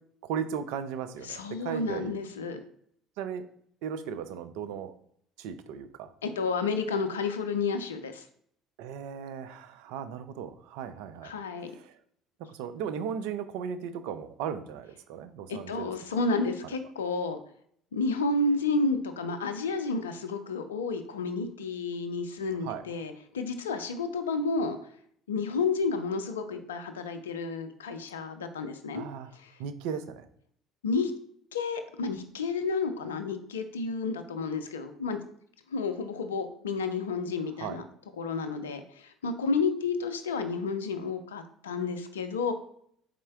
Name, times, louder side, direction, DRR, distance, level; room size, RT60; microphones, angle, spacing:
voice 1, 0.2-2.1 3.2-3.4 3.8-4.9 5.4-6.1 8.8-11.3 11.7-12.0 12.4-16.2 22.6-22.8 28.9-29.3 29.6-30.3 37.6-37.8, right 7 dB, 65° right, 10 dB, 0.3 m, -36 dB
voice 2, 1.2-2.6 6.2-8.2 11.2-11.7 15.5-17.4 17.9-24.8 25.3-29.0 29.3-29.5 30.8-31.1 31.5-35.2 35.7-37.8 38.2-42.5, left 4 dB, 80° left, 8 dB, 0.4 m, -31 dB
4.1 x 3.6 x 2.3 m, 0.66 s
figure-of-eight pair, 60°, 0 cm